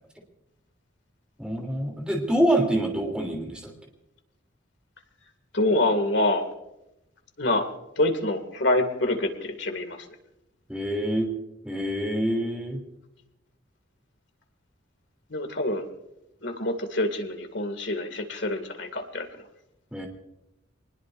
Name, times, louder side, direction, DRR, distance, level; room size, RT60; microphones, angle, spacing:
voice 1, 1.4-3.7 10.7-11.3 11.6-12.8 19.9-20.1, right 1 dB, 5° right, 1 dB, 3.2 m, -26 dB
voice 2, 5.5-6.4 7.4-7.7 8.0-10.1 15.3-15.9 16.4-19.3, left 2 dB, 65° left, 6 dB, 2.3 m, -26 dB
25.0 x 20.0 x 2.6 m, 0.90 s
head